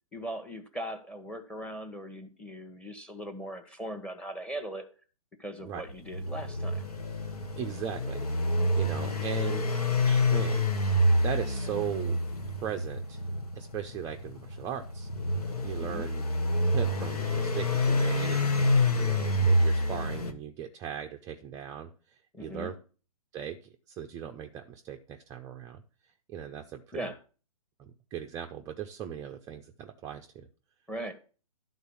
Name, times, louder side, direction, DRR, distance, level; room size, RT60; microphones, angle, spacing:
voice 1, 0.1-4.9 5.4-6.8 15.8-16.1 22.3-22.7 26.9-27.2 30.9-31.1, right 1 dB, 5° left, 9 dB, 1.1 m, -39 dB
sound 1, 5.9-20.3, left 1 dB, 85° left, 1.3 m, -27 dB
voice 2, 7.6-9.7 10.0-12.2 12.6-13.2 13.6-15.4 15.6-16.2 16.7-18.5 18.9-21.9 22.4-22.7 23.3-23.6 23.9-25.8 26.3-27.1 27.8-30.5, right 9 dB, 15° right, 4 dB, 0.5 m, -38 dB
11.0 x 4.0 x 7.0 m, 0.38 s
hypercardioid pair, 130°, 19 cm